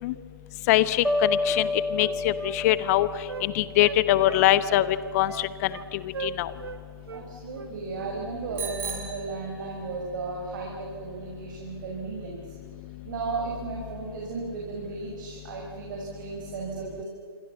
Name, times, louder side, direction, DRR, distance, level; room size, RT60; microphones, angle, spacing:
voice 1, 0.7-1.6 1.9-3.1 3.4-4.8 5.1-5.3 6.2-6.5, left 15 dB, 40° left, 15 dB, 1.2 m, -22 dB
sound 1, 1.0-4.1, left 2 dB, ahead, 0.6 m, -30 dB
Wind instrument woodwind instrument, 1.5-3.5 3.8-4.9 5.2-5.9 6.1-6.8 7.0-7.2 7.5-8.2 8.4-8.6, right 6 dB, 70° right, 1.6 m, -39 dB
voice 2, 7.1-12.5 13.0-17.0, right 4 dB, 50° right, -1 dB, 5.3 m, -35 dB
Bicycle bell, 8.6-10.1, right 7 dB, 15° right, 4.3 m, -37 dB
27.5 x 24.0 x 7.2 m, 2.3 s
figure-of-eight pair, 125°, 13 cm